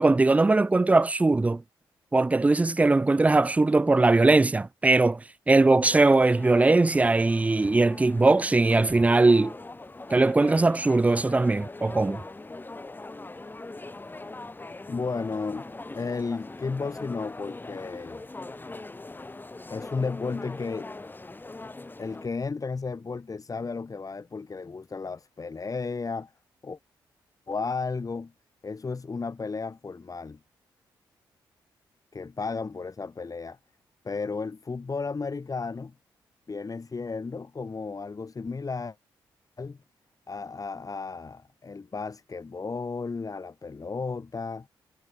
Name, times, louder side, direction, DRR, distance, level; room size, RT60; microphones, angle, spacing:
voice 1, 0.0-1.6 2.1-9.5 10.1-12.2, right 3 dB, 15° right, 0.3 m, -20 dB
sound 1, 5.8-22.3, left 2 dB, 20° left, 1.0 m, -41 dB
voice 2, 14.9-15.7 15.9-18.2 19.7-20.9 22.0-26.3 26.6-26.8 27.5-28.3 28.6-30.4 32.1-33.6 34.0-35.9 36.5-39.0 39.6-39.8 40.3-44.7, left 4 dB, 40° left, 3.0 m, -33 dB
supercardioid pair, 50°, 9 cm